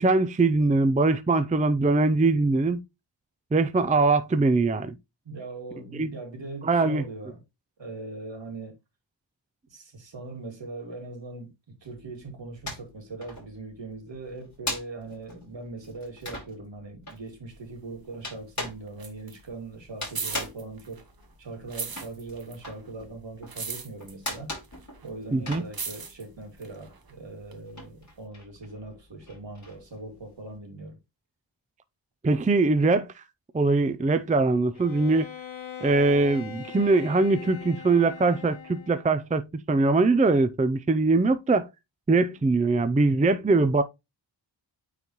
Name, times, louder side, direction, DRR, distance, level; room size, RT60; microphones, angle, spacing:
voice 1, 0.0-2.8 3.5-4.9 6.0-6.1 6.6-7.0 25.3-25.6 32.2-33.2 33.5-35.3 35.8-39.4 39.7-41.7 42.1-43.8, right 3 dB, 15° right, 0.4 m, -22 dB
voice 2, 5.2-7.4 7.8-8.8 9.7-21.1 21.4-24.5 25.0-31.0, right 3 dB, 65° right, 2.3 m, -40 dB
sound 1, 11.9-12.9 13.2-26.6 26.9-30.6, left 1 dB, 35° left, 4.8 m, -39 dB
sound 2, 17.5-18.5 18.8-21.3 21.6-27.6 28.2-28.3, right 5 dB, 50° right, 1.1 m, -38 dB
Bowed string instrument, 34.7-39.2, left 8 dB, 80° left, 1.4 m, -42 dB
9.1 x 3.9 x 3.0 m
wide cardioid pair, 100°, 47 cm